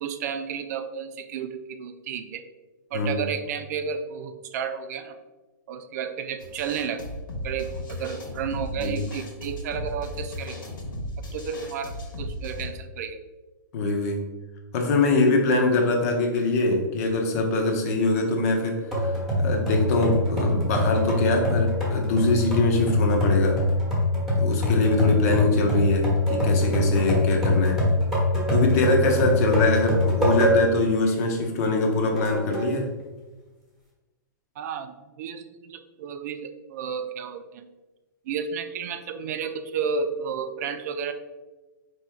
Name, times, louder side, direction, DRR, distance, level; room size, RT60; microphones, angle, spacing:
voice 1, 0.0-2.4 2.9-5.2 5.7-7.1 7.4-10.6 11.3-13.2 34.6-37.7 38.3-41.1, right 6 dB, 50° right, 9 dB, 0.4 m, -32 dB
sound 1, 6.4-12.7, left 1 dB, 80° left, 1.4 m, -36 dB
voice 2, 13.7-14.2 14.7-18.8 19.1-23.6 24.4-27.8 28.5-32.9, left 2 dB, 50° left, 2 dB, 0.9 m, -23 dB
sound 2, 18.9-30.8 31.3-31.4 32.2-32.7, left 1 dB, ahead, 1.2 m, -23 dB
4.3 x 3.0 x 3.5 m, 1.2 s
hypercardioid pair, 145°, 11 cm